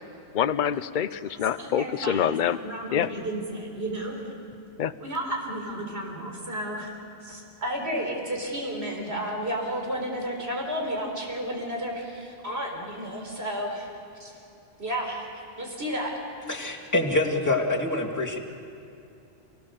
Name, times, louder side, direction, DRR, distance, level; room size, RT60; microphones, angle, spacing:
voice 1, 0.3-2.6 2.9-3.1 4.8-4.9, left 9 dB, 50° left, 14 dB, 0.7 m, -25 dB
voice 2, 1.6-4.2 5.0-6.9 7.2-13.9 14.2-14.3 14.8-15.2 15.6-16.1, equal, 65° right, 0 dB, 4.4 m, -32 dB
voice 3, 16.5-18.4, left 2 dB, 15° left, -2 dB, 2.5 m, -25 dB
29.5 x 18.0 x 6.9 m, 2.7 s
omnidirectional pair, 1.1 m